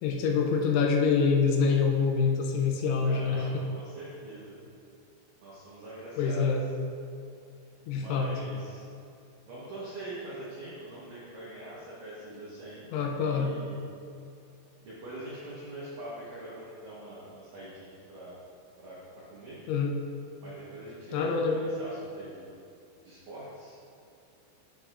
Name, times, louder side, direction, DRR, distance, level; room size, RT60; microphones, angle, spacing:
voice 1, 0.0-3.7 6.2-6.6 7.9-8.3 12.9-13.6 19.7-20.0 21.1-21.8, left 5 dB, 80° left, 1 dB, 3.0 m, -26 dB
voice 2, 3.0-4.6 5.4-6.5 7.9-8.8 9.5-13.8 14.8-18.4 18.8-19.6 20.4-22.5 23.0-23.8, right 1 dB, 75° right, -9 dB, 2.0 m, -43 dB
11.5 x 6.4 x 2.5 m, 2.5 s
omnidirectional pair, 5.7 m